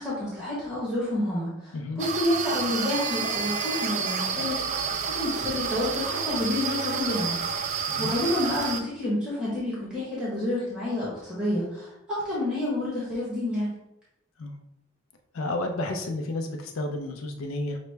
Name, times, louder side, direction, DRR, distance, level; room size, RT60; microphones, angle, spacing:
voice 1, 0.0-4.9 5.1-13.7, left 1 dB, 5° right, -9 dB, 1.1 m, -29 dB
voice 2, 1.7-2.0 7.9-8.1 14.4-14.5 15.3-17.8, left 2 dB, 80° left, 4 dB, 0.5 m, -31 dB
sound 1, 2.0-8.8, right 6 dB, 35° right, 0.4 m, -29 dB
5.8 x 2.1 x 3.3 m, 0.86 s
head